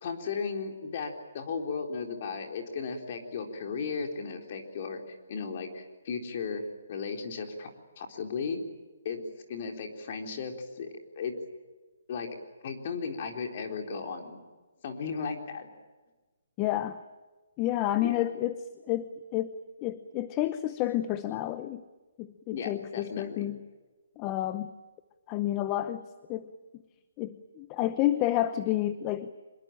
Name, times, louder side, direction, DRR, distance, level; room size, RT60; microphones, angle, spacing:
voice 1, 0.0-6.6 6.9-8.6 9.0-9.2 9.5-11.3 12.1-12.3 12.6-14.4 14.8-15.7 18.0-18.1 22.5-23.5, left 5 dB, 35° left, 4 dB, 4.0 m, -35 dB
voice 2, 16.6-17.0 17.6-18.5 18.9-19.5 19.8-21.8 22.2-23.6 24.2-24.7 25.3-26.0 26.3-26.4 27.2-29.3, left 14 dB, 20° left, 13 dB, 0.8 m, -30 dB
26.0 x 22.5 x 9.1 m, 1.2 s
hypercardioid pair, 170°, 0 cm